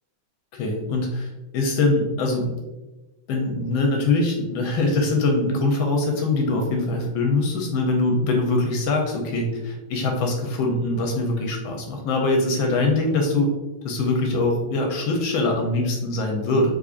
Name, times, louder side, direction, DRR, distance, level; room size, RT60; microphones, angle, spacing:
voice 1, 0.5-2.5 3.3-13.5 13.8-16.7, left 2 dB, 75° left, 1 dB, 1.3 m, -23 dB
3.7 x 3.2 x 2.4 m, 1.1 s
omnidirectional pair, 2.3 m